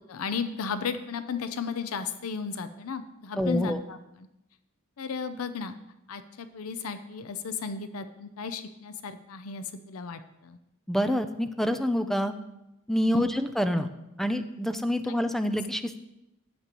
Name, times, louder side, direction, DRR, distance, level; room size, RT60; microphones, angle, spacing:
voice 1, 0.1-4.3 5.0-5.7 6.1-10.6 13.0-13.3, left 6 dB, 85° left, 10 dB, 0.5 m, -35 dB
voice 2, 3.4-3.8 10.9-12.3 12.9-13.9 14.2-16.1, equal, ahead, 9 dB, 0.4 m, -27 dB
11.5 x 8.3 x 3.0 m, 0.90 s
head